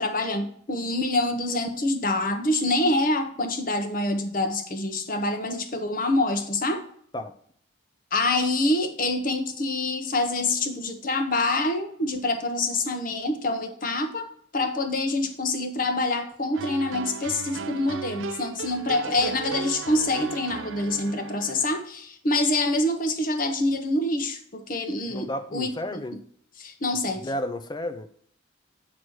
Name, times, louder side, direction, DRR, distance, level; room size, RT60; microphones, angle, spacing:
voice 1, 0.0-6.8 8.1-26.0 26.6-27.3, left 2 dB, 45° left, 6 dB, 0.9 m, -26 dB
sound 1, 16.5-21.7, right 6 dB, 85° right, 0.5 m, -36 dB
voice 2, 25.1-26.2 27.2-28.1, left 1 dB, 20° left, 10 dB, 0.5 m, -32 dB
8.0 x 3.0 x 6.2 m, 0.62 s
head